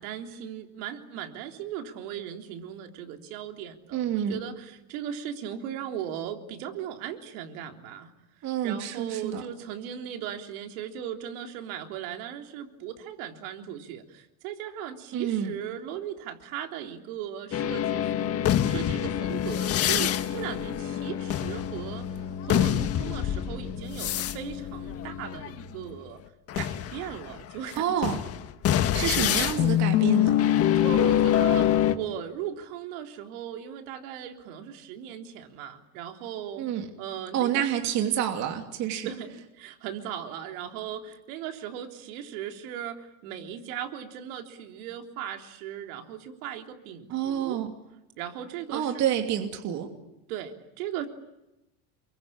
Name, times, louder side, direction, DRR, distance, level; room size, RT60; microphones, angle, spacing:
voice 1, 0.0-8.1 8.6-26.2 26.5-28.0 30.8-36.7 37.0-37.6 39.0-47.6 48.2-49.0 50.3-51.1, right 10 dB, 65° right, 4 dB, 3.6 m, -38 dB
voice 2, 3.9-4.4 8.4-9.4 15.1-15.5 27.8-28.2 28.9-30.4 36.6-36.9 37.3-39.1 47.1-47.7 48.7-49.9, right 9 dB, 40° right, 4 dB, 2.8 m, -28 dB
sound 1, 17.5-26.0 26.5-31.9, left 11 dB, 30° left, 1.6 m, -26 dB
29.0 x 23.5 x 8.8 m, 0.93 s
supercardioid pair, 160°, 45 cm